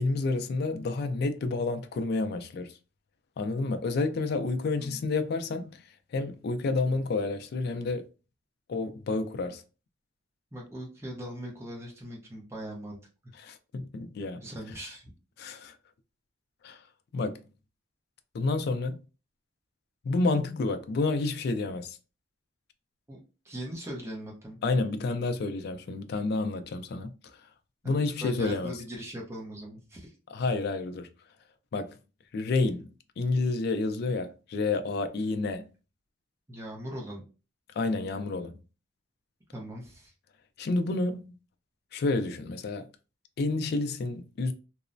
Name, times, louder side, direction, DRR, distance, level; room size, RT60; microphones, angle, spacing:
voice 1, 0.0-2.7 3.4-5.8 6.1-8.1 8.7-9.6 13.4-14.4 15.4-15.7 16.6-16.8 17.1-17.4 18.3-19.0 20.0-22.0 24.6-27.1 27.8-28.7 30.3-31.1 31.7-32.0 32.3-32.9 33.2-35.7 37.8-38.6 40.6-41.3 41.9-42.9 43.4-44.5, left 3 dB, 50° left, 0.3 m, -29 dB
voice 2, 10.5-13.0 14.4-15.1 23.1-23.2 23.4-24.6 27.9-30.2 36.5-37.2 39.5-40.1, equal, 15° right, 0.6 m, -40 dB
3.0 x 2.0 x 2.5 m
head